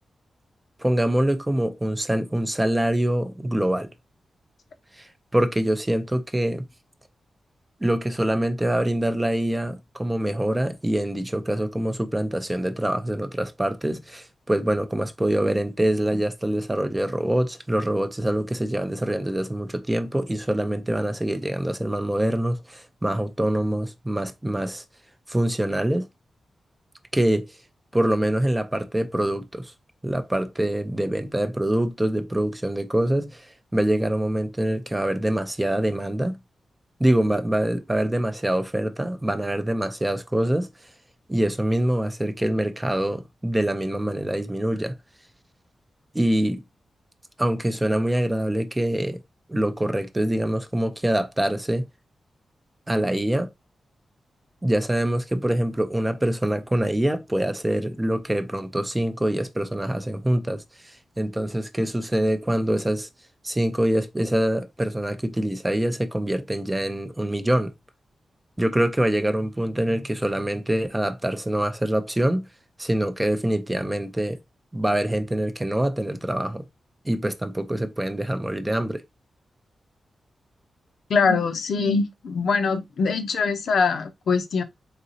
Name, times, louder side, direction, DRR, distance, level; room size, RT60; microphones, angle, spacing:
voice 1, 0.8-3.9 4.9-6.6 7.8-24.8 25.3-26.1 27.1-27.5 27.9-29.7 30.0-36.4 37.0-40.7 41.3-45.0 46.1-46.6 47.4-49.2 49.5-51.9 52.9-53.5 54.6-63.1 63.4-67.7 68.6-72.5 72.8-74.4 74.7-76.6 77.0-79.0, right 1 dB, 10° right, 0.5 m, -25 dB
voice 2, 81.1-84.6, left 4 dB, 75° left, 0.7 m, -23 dB
4.0 x 3.9 x 2.7 m
wide cardioid pair, 140°, 0 cm